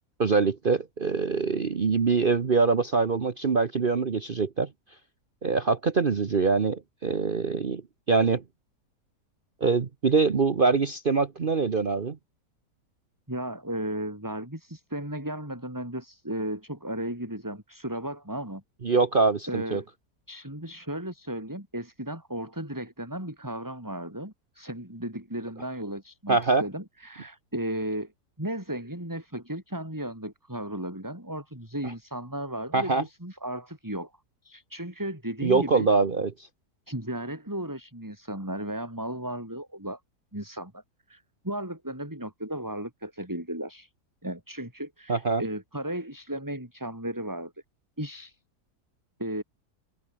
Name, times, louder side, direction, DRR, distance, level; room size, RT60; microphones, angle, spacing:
voice 1, 0.2-4.7 5.4-7.8 8.1-8.4 9.6-12.2 18.8-19.8 26.3-26.6 32.7-33.0 35.4-36.3 45.1-45.4, right 4 dB, 40° right, 1.1 m, -24 dB
voice 2, 13.3-18.6 19.5-19.9 20.3-28.1 28.4-34.1 34.4-35.9 36.9-40.0 40.3-40.8 41.1-43.9 44.2-47.5 48.0-48.4 49.2-49.4, right 1 dB, 10° right, 5.2 m, -35 dB
omnidirectional pair, 1.7 m